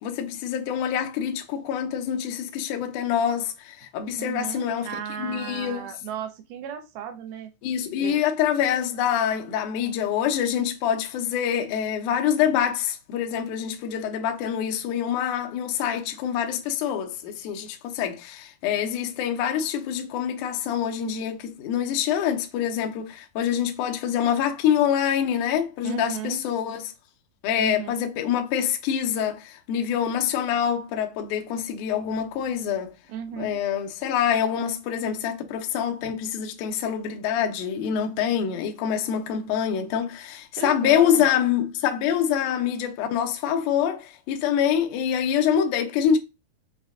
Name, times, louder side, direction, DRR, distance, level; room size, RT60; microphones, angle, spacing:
voice 1, 0.0-4.9 5.2-5.9 7.6-26.9 27.4-32.9 33.4-46.2, left 9 dB, 75° left, 1.8 m, -25 dB
voice 2, 4.1-7.5 8.0-8.2 25.8-26.4 27.6-28.0 33.1-33.6 40.5-41.3, right 9 dB, 80° right, 2.4 m, -35 dB
6.2 x 2.2 x 3.6 m
omnidirectional pair, 4.5 m